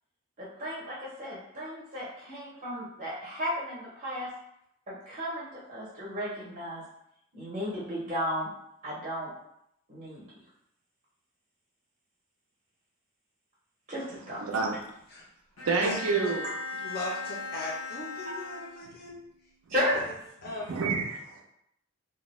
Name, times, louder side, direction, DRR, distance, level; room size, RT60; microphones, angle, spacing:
voice 1, 0.4-4.3 4.9-6.8 7.3-8.5 8.8-9.3 9.9-10.2 13.9-14.4 19.7-20.1, equal, 30° right, -7 dB, 0.6 m, -34 dB
voice 2, 14.4-14.8 15.6-16.4 20.5-21.4, right 4 dB, 75° right, 2 dB, 0.5 m, -29 dB
Bowed string instrument, 15.6-19.2, left 3 dB, 90° left, 0.6 m, -38 dB
voice 3, 15.8-16.3 16.8-19.2 19.9-20.1 20.4-20.8, left 2 dB, 45° left, -3 dB, 0.4 m, -38 dB
2.3 x 2.0 x 3.0 m, 0.76 s
head